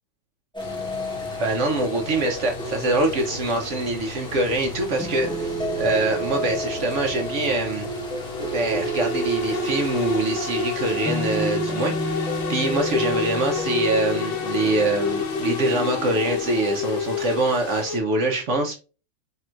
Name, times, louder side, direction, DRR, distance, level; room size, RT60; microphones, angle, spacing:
sound 1, 0.5-17.8, equal, 5° left, 0.9 m, -32 dB
sound 2, 0.6-18.0, left 3 dB, 60° left, 1.1 m, -30 dB
voice 1, 1.4-7.9 8.5-18.8, right 2 dB, 85° right, 3 dB, 0.6 m, -24 dB
4.4 x 3.5 x 2.4 m, 0.34 s
omnidirectional pair, 2.2 m